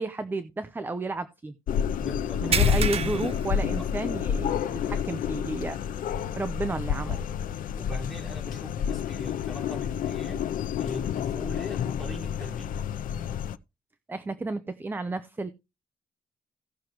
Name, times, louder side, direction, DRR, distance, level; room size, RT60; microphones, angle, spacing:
voice 1, 0.0-1.5 2.4-5.8 6.4-7.2 14.1-15.5, right 2 dB, 15° right, 0.6 m, -32 dB
sound 1, 1.7-13.6, left 8 dB, 80° left, 0.6 m, -29 dB
voice 2, 1.9-3.2 3.8-3.9 6.6-7.3 7.8-10.5 10.8-12.9, left 1 dB, ahead, 3.1 m, -41 dB
sound 2, 2.5-4.4 4.7-5.0 5.4-5.5 7.2-7.3, right 7 dB, 45° right, 0.8 m, -30 dB
16.5 x 6.4 x 3.0 m
wide cardioid pair, 155°, 14 cm